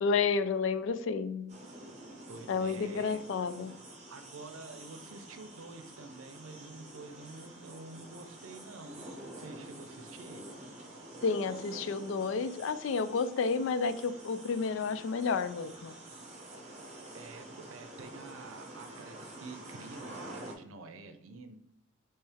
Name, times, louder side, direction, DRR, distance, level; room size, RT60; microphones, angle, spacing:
voice 1, 0.0-1.6 2.5-3.8 11.2-15.9, left 5 dB, 70° left, 13 dB, 0.3 m, -31 dB
sound 1, 1.5-20.5, right 1 dB, 35° right, 0.8 m, -48 dB
voice 2, 2.3-3.3 4.1-9.0 9.4-10.4 17.1-17.4 17.7-21.6, right 3 dB, 85° right, 8 dB, 0.6 m, -48 dB
3.4 x 3.2 x 4.5 m, 0.79 s
head